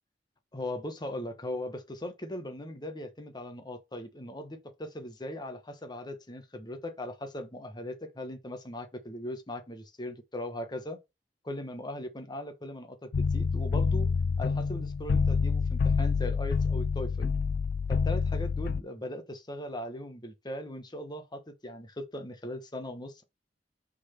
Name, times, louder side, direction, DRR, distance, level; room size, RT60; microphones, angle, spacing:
voice 1, 0.5-11.0 11.4-14.1 14.4-17.3 17.9-23.2, left 1 dB, 25° left, 1.2 m, -39 dB
sound 1, 13.1-18.8, left 5 dB, 60° left, 0.3 m, -27 dB
5.9 x 4.1 x 5.6 m
head